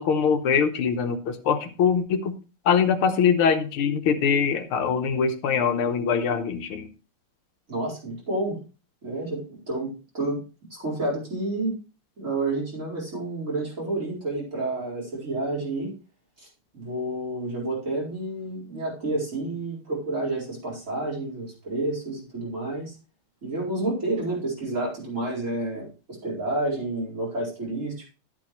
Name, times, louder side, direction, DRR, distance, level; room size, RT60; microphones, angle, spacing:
voice 1, 0.0-2.3 2.7-6.9, left 6 dB, 90° left, 7 dB, 1.9 m, -23 dB
voice 2, 7.7-8.6 9.0-10.4 10.7-11.7 12.2-15.9 16.4-16.5 16.7-22.9 23.4-25.9 26.2-28.1, right 2 dB, 35° right, -4 dB, 4.9 m, -29 dB
12.0 x 8.6 x 3.1 m, 0.33 s
omnidirectional pair, 2.3 m